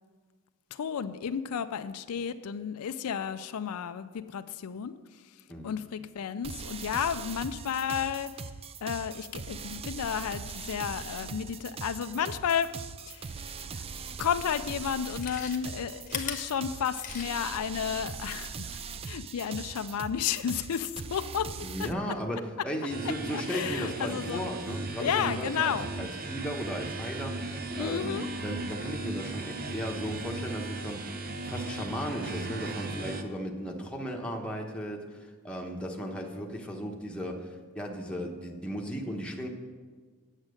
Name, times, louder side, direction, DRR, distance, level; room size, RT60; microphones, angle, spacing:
voice 1, 0.7-8.3 8.8-12.8 13.1-13.8 14.2-18.8 19.0-21.9 23.0-24.4 25.0-25.9 27.8-28.3, left 8 dB, 80° left, 11 dB, 0.4 m, -32 dB
sound 1, 6.4-21.9, right 5 dB, 25° right, 0.3 m, -41 dB
Chewing mastication, 14.2-14.3 14.9-17.6 17.9-18.0, left 7 dB, 35° left, 0.9 m, -39 dB
voice 2, 21.6-39.5, equal, 5° left, 0 dB, 1.0 m, -36 dB
sound 2, 22.9-33.2, right 2 dB, 45° right, 0.8 m, -37 dB
8.9 x 7.3 x 6.4 m, 1.5 s
head